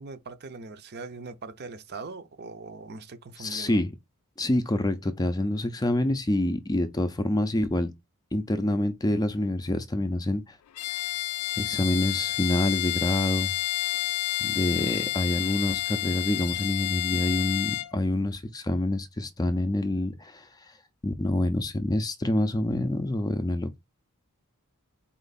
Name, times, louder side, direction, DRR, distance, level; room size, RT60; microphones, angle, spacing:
voice 1, 0.0-3.8, right 3 dB, 45° right, 0.6 m, -41 dB
voice 2, 3.4-3.9 4.4-7.9 8.3-10.6 10.9-11.1 11.6-13.5 14.4-20.5 21.0-23.8, left 1 dB, 15° left, 0.4 m, -27 dB
Bowed string instrument, 10.7-17.9, left 17 dB, 80° left, 0.4 m, -30 dB
4.4 x 3.0 x 4.0 m
head